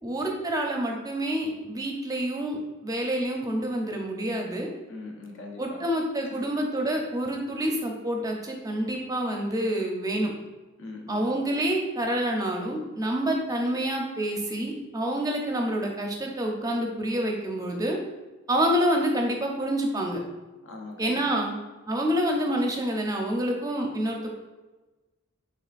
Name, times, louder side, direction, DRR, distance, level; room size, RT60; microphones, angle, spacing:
voice 1, 0.0-4.7 5.6-10.3 11.1-18.0 18.5-20.2 21.0-21.5 21.9-24.3, right 1 dB, 15° right, 1 dB, 0.6 m, -27 dB
voice 2, 4.9-5.8 6.3-6.5 10.8-11.5 20.6-21.5, left 2 dB, 60° left, 1 dB, 0.8 m, -42 dB
5.5 x 3.6 x 2.5 m, 1.2 s
head